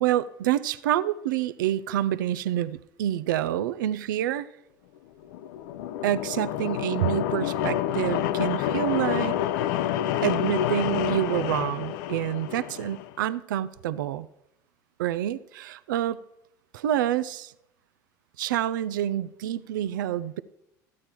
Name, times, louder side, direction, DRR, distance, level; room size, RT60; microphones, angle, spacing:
voice 1, 0.0-4.5 6.0-9.4 10.2-14.3 15.0-16.2 16.7-17.5 18.4-20.4, right 12 dB, 80° right, 16 dB, 0.5 m, -27 dB
sound 1, 5.2-13.1, left 11 dB, 70° left, 0.5 m, -28 dB
13.5 x 8.6 x 4.4 m, 0.81 s
hypercardioid pair, 80°, 11 cm